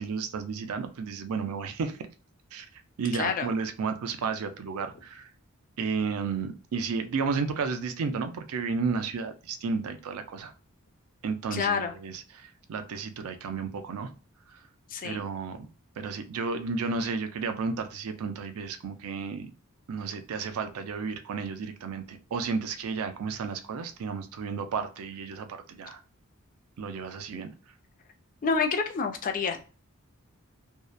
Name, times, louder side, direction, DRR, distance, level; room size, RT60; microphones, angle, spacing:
voice 1, 0.0-2.0 2.5-2.7 3.0-5.3 5.8-10.5 11.2-14.1 15.0-15.6 16.0-19.5 19.9-26.0 26.8-27.5, right 5 dB, 80° right, 0.4 m, -32 dB
voice 2, 3.1-3.5 11.5-11.9 14.9-15.2 28.4-29.6, left 5 dB, 40° left, 0.4 m, -28 dB
2.7 x 2.1 x 2.2 m
head